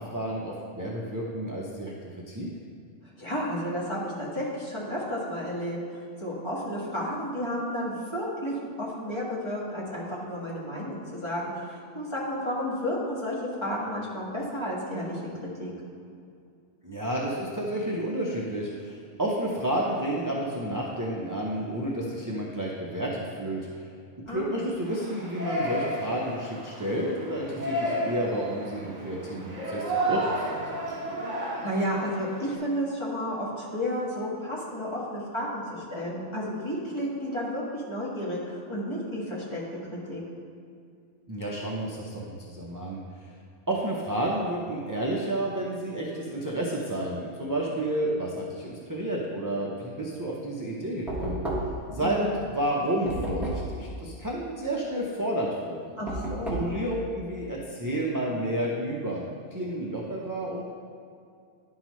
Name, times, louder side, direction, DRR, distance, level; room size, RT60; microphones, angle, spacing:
voice 1, 0.0-1.9 2.3-2.5 16.8-23.9 24.3-30.8 41.3-43.3 43.7-51.4 51.9-52.3 52.5-56.0 56.5-59.3 59.5-60.6, right 1 dB, 25° right, -4 dB, 0.5 m, -31 dB
voice 2, 3.2-5.8 6.2-15.7 24.3-24.6 31.4-39.6 40.1-40.2 52.0-52.3 56.0-56.6, equal, 20° left, -6 dB, 1.5 m, -32 dB
Yell, 24.9-32.6, right 1 dB, 60° right, 2.0 m, -32 dB
Knock, 51.1-51.9 53.1-53.8 56.1-56.8, right 1 dB, ahead, 1.0 m, -31 dB
10.5 x 5.6 x 3.1 m, 2.4 s
omnidirectional pair, 1.4 m